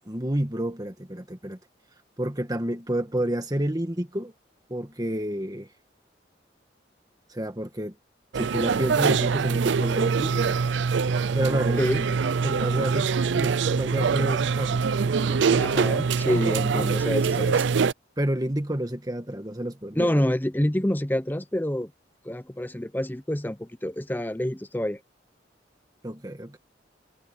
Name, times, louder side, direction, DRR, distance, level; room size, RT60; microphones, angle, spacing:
voice 1, 0.0-1.6 2.2-4.3 4.7-5.7 7.3-7.9 8.3-10.6 11.3-12.1 12.4-15.6 16.7-16.9 18.2-20.3 26.0-26.6, right 1 dB, 20° right, 1.6 m, -30 dB
sound 1, 8.3-17.9, right 5 dB, 75° right, 0.4 m, -24 dB
voice 2, 15.6-17.7 20.0-21.9 22.2-25.0, left 1 dB, 10° left, 0.7 m, -27 dB
head